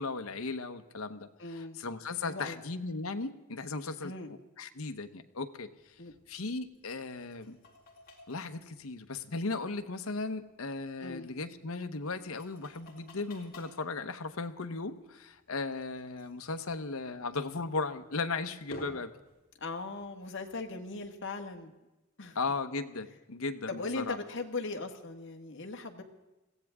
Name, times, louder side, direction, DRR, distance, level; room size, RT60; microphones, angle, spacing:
voice 1, 0.0-5.7 6.3-7.6 8.3-19.1 22.3-24.2, left 3 dB, 85° left, 9 dB, 1.0 m, -36 dB
voice 2, 1.4-1.8 2.2-2.6 4.0-4.3 6.0-6.1 11.0-11.3 19.6-21.8 22.2-22.4 23.7-26.0, left 3 dB, 60° left, 4 dB, 1.7 m, -39 dB
sound 1, 5.8-21.6, left 1 dB, 45° left, 3.8 m, -55 dB
21.5 x 16.5 x 3.6 m, 1.0 s
head